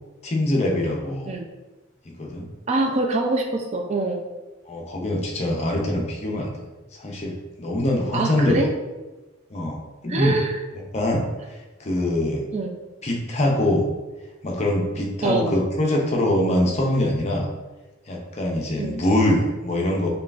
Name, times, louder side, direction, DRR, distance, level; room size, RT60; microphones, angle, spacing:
voice 1, 0.2-1.3 2.2-2.5 4.7-6.7 7.0-8.6 9.5-10.4 10.9-11.3 11.8-12.4 13.0-13.8 14.4-17.5 18.1-20.1, left 1 dB, 30° left, -1 dB, 0.5 m, -23 dB
voice 2, 2.7-4.2 8.1-8.7 10.1-10.6 12.5-12.7 15.2-15.5 18.8-19.0, right 2 dB, 30° right, 3 dB, 0.3 m, -24 dB
5.4 x 2.3 x 2.4 m, 1.2 s
head